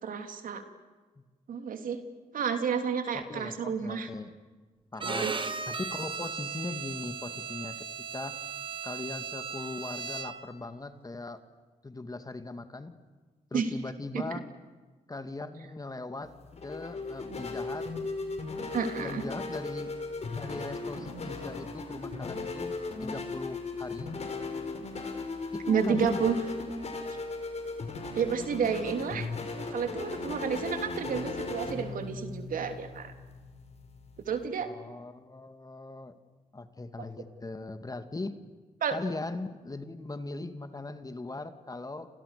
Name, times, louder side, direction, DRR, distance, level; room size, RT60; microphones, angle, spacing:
voice 1, 0.0-0.6 1.5-2.0 2.3-4.1 5.0-5.3 13.5-13.7 14.1-14.2 18.7-19.2 25.7-26.4 28.1-29.3 29.7-33.1 34.2-34.7 37.0-37.1 38.8-39.0, right 6 dB, 65° right, 6 dB, 3.1 m, -30 dB
voice 2, 3.1-4.3 4.9-5.3 5.7-8.4 8.8-11.4 11.8-13.0 13.5-14.4 15.1-16.3 16.6-17.9 19.0-22.7 23.0-24.1 25.5-26.4 34.6-36.1 36.5-38.4 38.9-42.2, left 2 dB, 25° left, 9 dB, 2.3 m, -39 dB
Bowed string instrument, 5.0-10.6, right 5 dB, 35° right, 2.6 m, -37 dB
sound 1, 16.2-34.5, left 3 dB, 45° left, 5.8 m, -37 dB
30.0 x 28.0 x 6.8 m, 1.4 s
supercardioid pair, 65°, 15 cm